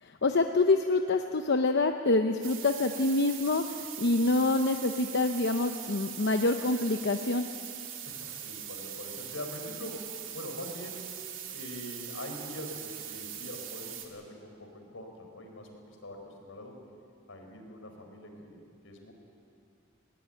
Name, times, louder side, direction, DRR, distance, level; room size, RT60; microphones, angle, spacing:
voice 1, 0.0-7.5, left 2 dB, 60° left, 6 dB, 0.8 m, -26 dB
sound 1, 2.4-14.1, right 9 dB, 70° right, 2.7 m, -41 dB
voice 2, 8.0-11.1 11.5-16.8 17.3-19.1, left 1 dB, 85° left, 3 dB, 4.4 m, -43 dB
21.0 x 18.5 x 9.2 m, 2.4 s
head